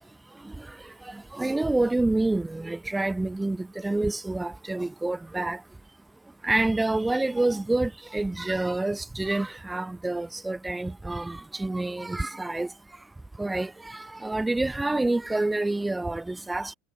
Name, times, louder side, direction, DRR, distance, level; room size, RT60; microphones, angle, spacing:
voice 1, 0.0-5.8 6.2-16.7, right 2 dB, 10° right, 0.7 m, -28 dB
supercardioid pair, 120°, 0 cm